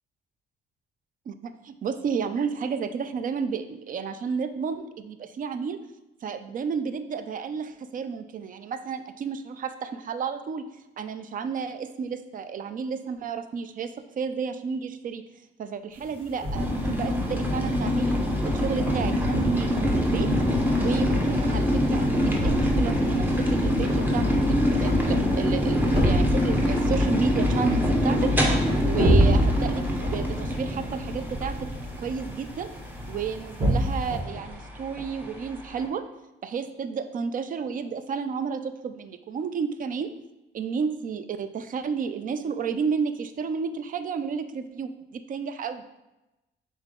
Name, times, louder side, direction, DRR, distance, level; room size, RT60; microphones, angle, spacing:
voice 1, 1.3-5.8 6.2-10.7 11.0-15.2 15.6-18.2 18.4-20.3 20.8-31.6 32.0-32.7 33.1-36.1 36.4-40.1 40.5-45.8, right 6 dB, 45° right, 10 dB, 0.4 m, -31 dB
sound 1, 16.0-34.2, right 1 dB, 25° right, 1.2 m, -30 dB
sound 2, 16.5-35.9, left 1 dB, 10° right, 0.9 m, -25 dB
3.7 x 3.5 x 3.7 m, 0.99 s
cardioid pair, 90°, 20 cm